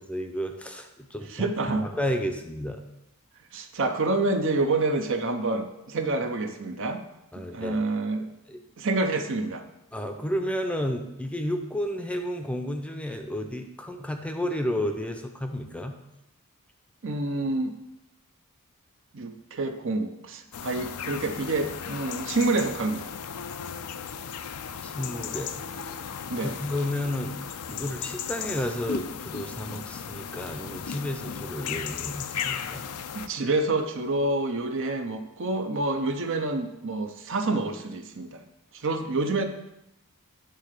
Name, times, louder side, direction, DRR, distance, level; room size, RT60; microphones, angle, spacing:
voice 1, 0.0-1.5 1.8-2.8 7.3-7.8 8.5-8.6 9.9-16.0 24.8-25.5 26.4-27.4 27.7-32.9, equal, 5° left, 5 dB, 0.6 m, -31 dB
voice 2, 1.3-1.9 3.5-7.0 7.5-8.3 8.8-9.6 17.0-17.8 19.1-23.1 26.3-26.6 33.1-38.4 38.7-39.4, right 2 dB, 60° right, 6 dB, 0.8 m, -27 dB
sound 1, 20.5-33.3, left 7 dB, 85° left, 0.5 m, -36 dB
9.3 x 3.8 x 6.5 m, 0.87 s
head